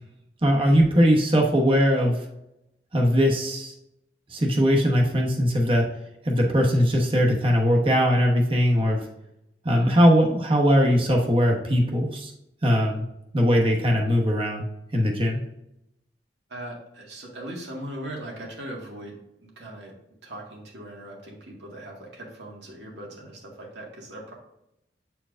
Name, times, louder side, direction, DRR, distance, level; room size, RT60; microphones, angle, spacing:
voice 1, 0.4-2.2 2.9-3.7 4.3-5.9 6.2-9.0 9.6-12.3 12.6-13.0 13.3-14.6 14.9-15.4, equal, 30° right, 0 dB, 1.0 m, -20 dB
voice 2, 16.5-20.0 20.2-24.3, right 1 dB, 85° right, -1 dB, 1.9 m, -39 dB
8.3 x 4.5 x 2.5 m, 0.84 s
head